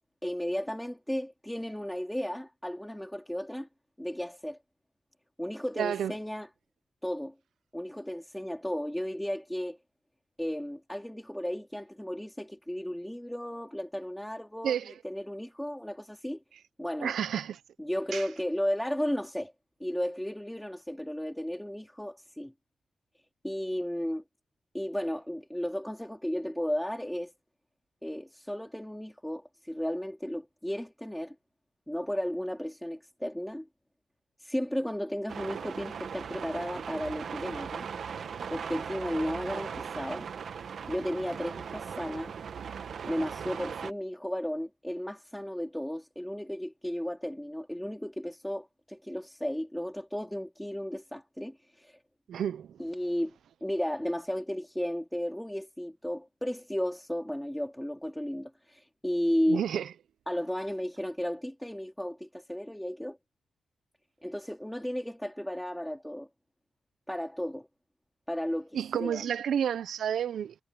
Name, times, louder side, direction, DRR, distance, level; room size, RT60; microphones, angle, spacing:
voice 1, 0.2-3.7 4.0-4.6 5.4-6.5 7.0-7.3 7.7-9.8 10.4-16.4 16.8-17.1 17.8-19.5 19.8-22.5 23.4-24.2 24.7-27.3 28.0-31.4 31.9-33.7 34.4-37.9 38.5-40.3 40.9-42.3 43.0-52.0 52.8-53.4 53.6-59.6 60.3-63.2 64.2-66.3 67.1-67.7 68.3-69.2, equal, 5° left, 3.6 m, -34 dB
voice 2, 5.8-6.1 14.6-14.9 17.0-17.6 18.1-18.3 52.3-52.8 59.5-59.9 68.7-70.6, right 9 dB, 80° right, 0.9 m, -30 dB
sound 1, 35.3-43.9, right 7 dB, 65° right, 1.8 m, -38 dB
cardioid pair, 95°, 0 cm